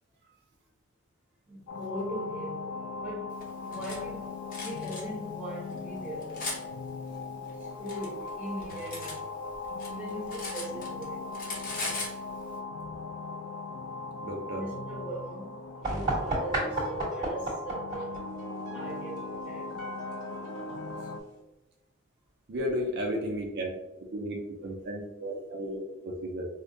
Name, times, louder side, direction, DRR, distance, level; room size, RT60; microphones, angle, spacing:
voice 1, 1.5-6.4 7.5-9.3 9.8-11.2 14.5-15.5 15.8-18.2 18.7-19.7, right 1 dB, 5° right, 1.1 m, -40 dB
sound 1, 1.7-21.2, left 3 dB, 80° left, 0.4 m, -39 dB
Cutlery silverware, 3.4-4.0 4.5-5.0 5.7-6.6 7.5-9.2 9.5-11.1 11.3-12.2, left 2 dB, 45° left, 0.8 m, -38 dB
voice 2, 14.2-14.6 22.5-23.8 24.1-26.5, equal, 55° right, 0.5 m, -34 dB
sound 2, 15.8-21.4, right 2 dB, 25° right, 1.4 m, -35 dB
4.9 x 2.1 x 2.6 m
head